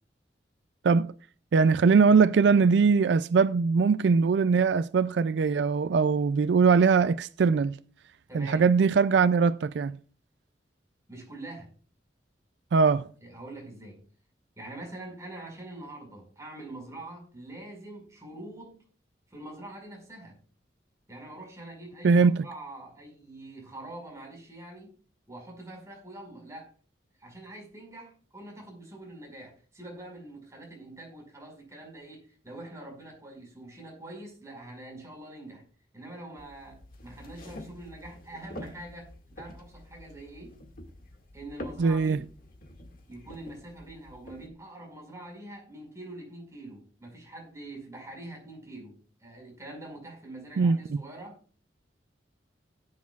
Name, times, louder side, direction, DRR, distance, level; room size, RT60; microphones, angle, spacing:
voice 1, 1.5-7.8 8.3-10.0 12.7-13.1 22.0-22.4 41.8-42.2 50.6-51.0, right 5 dB, 80° right, 0.4 m, -21 dB
voice 2, 8.3-8.7 11.1-11.7 13.2-14.0 14.6-18.8 19.3-20.4 21.1-24.9 25.3-26.7 27.2-35.6 35.9-40.6 41.3-42.2 43.1-51.4, right 1 dB, 15° right, 5.3 m, -44 dB
sound 1, 36.4-44.5, left 1 dB, 50° left, 2.0 m, -47 dB
17.5 x 9.6 x 2.4 m
head